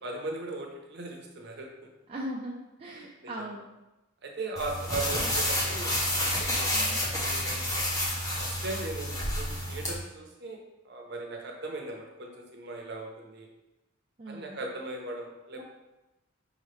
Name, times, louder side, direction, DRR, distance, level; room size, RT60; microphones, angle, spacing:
voice 1, 0.0-1.7 2.9-3.3 4.2-8.0 8.4-10.6 10.8-13.5 14.3-15.6, right 2 dB, 50° right, 1 dB, 0.7 m, -38 dB
voice 2, 2.1-3.6 5.2-5.3 6.7-7.0 14.2-14.6 15.6-15.7, right 1 dB, 25° right, -3 dB, 0.4 m, -39 dB
sound 1, 4.6-9.9, left 1 dB, 15° left, 0.6 m, -29 dB
5.5 x 2.9 x 3.2 m, 1.0 s
head